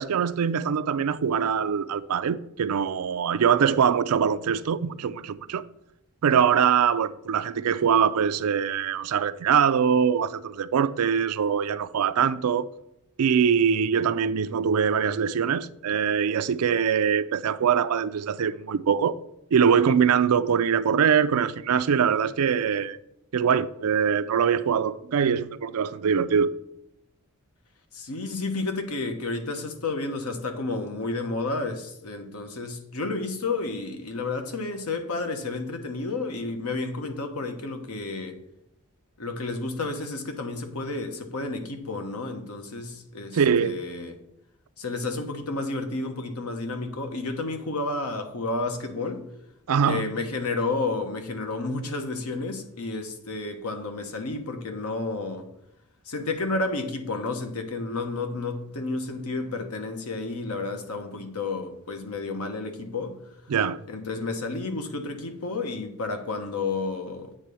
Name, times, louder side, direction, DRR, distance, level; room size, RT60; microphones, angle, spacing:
voice 1, 0.0-5.6 6.2-12.7 13.2-19.2 19.5-23.0 23.3-26.5 43.3-43.8 49.7-50.1 63.5-63.8, right 7 dB, 80° right, 0.4 m, -23 dB
voice 2, 27.9-38.4 39.2-44.2 44.8-49.2 49.9-55.5 56.0-63.2 63.9-67.3, left 3 dB, 80° left, 1.1 m, -31 dB
8.8 x 3.7 x 6.9 m
head